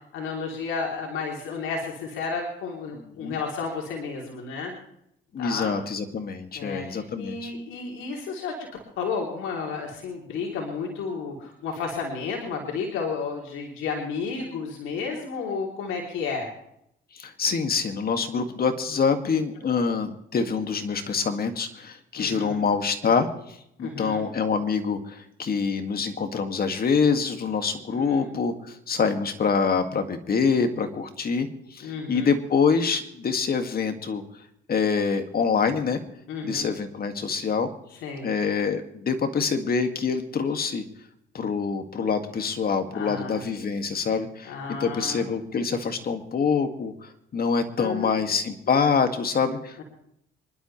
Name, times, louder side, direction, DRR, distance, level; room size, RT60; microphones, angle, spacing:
voice 1, 0.1-4.7 5.4-5.7 6.5-16.5 22.2-22.6 23.8-24.2 27.9-28.3 31.8-32.3 36.3-36.7 38.0-38.3 42.9-43.4 44.5-45.3 47.8-48.2, left 5 dB, 90° left, 0 dB, 3.2 m, -32 dB
voice 2, 2.9-3.4 5.3-7.5 17.1-34.2 34.7-36.0 36.4-37.7 38.2-40.8 41.3-49.8, left 5 dB, 50° left, 6 dB, 2.2 m, -26 dB
26.5 x 12.0 x 3.3 m, 0.74 s
cardioid pair, 90°, 20 cm